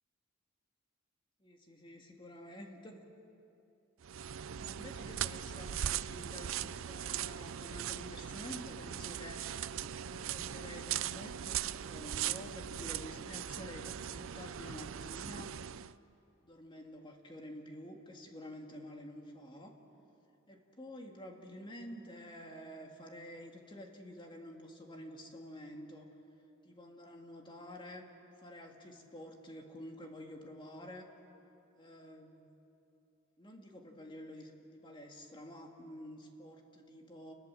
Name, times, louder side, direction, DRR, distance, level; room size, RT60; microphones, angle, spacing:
voice 1, 1.4-3.0 4.6-9.6 10.0-15.6 16.4-19.8 20.5-26.1 26.6-28.1 28.4-31.1 31.8-32.4 33.4-37.3, left 1 dB, 25° left, 2 dB, 2.4 m, -49 dB
sound 1, 4.0-15.9, right 10 dB, 70° right, 0.5 m, -39 dB
28.5 x 20.5 x 7.7 m, 2.9 s
head